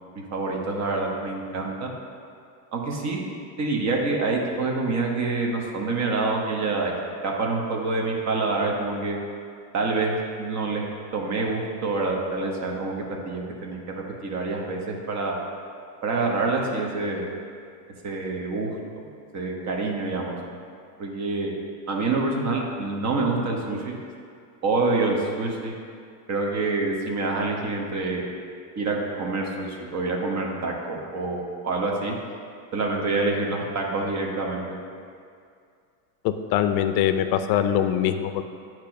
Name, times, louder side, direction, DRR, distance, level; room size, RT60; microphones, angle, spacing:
voice 1, 0.1-1.9 2.7-3.2 3.6-6.9 7.2-9.2 9.7-12.9 13.3-15.4 16.0-17.3 18.0-19.1 19.3-20.4 21.0-21.5 21.9-23.9 24.6-25.7 26.3-28.3 28.8-32.1 32.7-34.7, right 3 dB, 35° right, 0 dB, 1.1 m, -27 dB
voice 2, 36.2-38.4, left 10 dB, 50° left, 9 dB, 0.5 m, -23 dB
8.4 x 3.0 x 6.0 m, 2.3 s
supercardioid pair, 130°, 47 cm